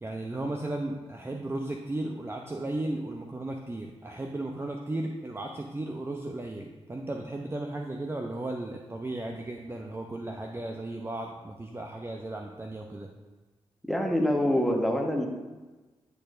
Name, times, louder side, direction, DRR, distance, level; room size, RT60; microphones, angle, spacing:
voice 1, 0.0-13.1, right 2 dB, 20° right, 1 dB, 0.6 m, -35 dB
voice 2, 13.9-15.3, left 1 dB, ahead, 2 dB, 1.3 m, -25 dB
10.5 x 4.4 x 2.6 m, 1.2 s
supercardioid pair, 45°, 11 cm